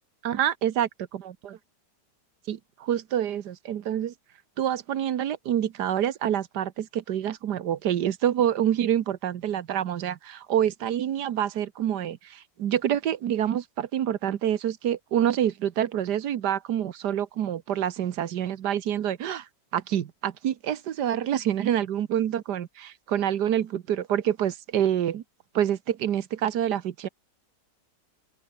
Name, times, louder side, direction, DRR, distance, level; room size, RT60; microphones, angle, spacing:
voice 1, 0.2-1.6 2.5-4.1 4.6-19.5 19.7-25.2 25.5-27.1, right 10 dB, 70° right, 1.6 m, -27 dB
open air
omnidirectional pair, 1.9 m